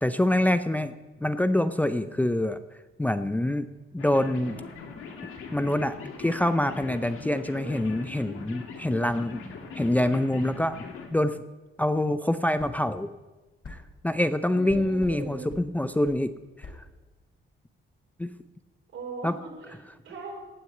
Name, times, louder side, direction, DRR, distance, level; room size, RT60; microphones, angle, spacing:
voice 1, 0.0-0.9 1.2-2.6 3.0-3.7 3.9-4.6 5.5-9.4 9.8-10.8 11.1-11.4 11.8-13.1 13.7-13.8 14.0-16.3 16.6-16.7 18.2-18.3 19.2-19.4, left 1 dB, 5° left, 10 dB, 0.5 m, -25 dB
sound 1, 4.0-11.1, left 5 dB, 85° left, 2.5 m, -41 dB
voice 2, 7.3-7.8 14.5-15.5 18.9-19.8 20.0-20.3, right 3 dB, 75° right, 0 dB, 4.7 m, -40 dB
sound 2, 12.6-12.8 13.6-13.8 14.7-15.2 15.5-15.7 16.1-16.2 16.6-16.8, left 3 dB, 45° left, 3.8 m, -42 dB
17.5 x 6.3 x 8.3 m, 1.1 s
cardioid pair, 135°, 21 cm